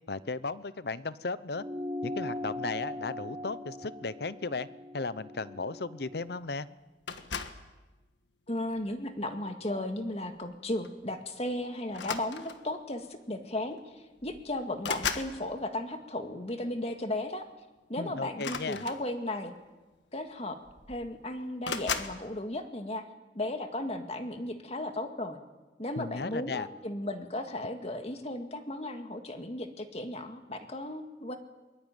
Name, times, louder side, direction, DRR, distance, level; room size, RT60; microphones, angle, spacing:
voice 1, 0.1-1.6 2.0-4.7 4.9-6.7 18.0-18.9 26.0-26.7, left 3 dB, 60° left, 16 dB, 0.8 m, -35 dB
sound 1, 1.5-6.3, left 1 dB, 20° right, 2.9 m, -39 dB
sound 2, 7.1-7.7 8.6-8.9 10.4-10.5 10.8-11.0 11.9-12.8 13.8-13.9 14.2-15.4 18.3-19.4 20.3-20.4 20.6-21.2 21.6-22.2, left 6 dB, 85° left, 1.6 m, -36 dB
voice 2, 8.5-17.5 17.9-19.5 20.1-20.6 20.9-23.0 23.3-25.4 25.8-31.4, left 1 dB, 35° left, 6 dB, 2.0 m, -35 dB
23.0 x 21.5 x 9.2 m, 1.2 s
head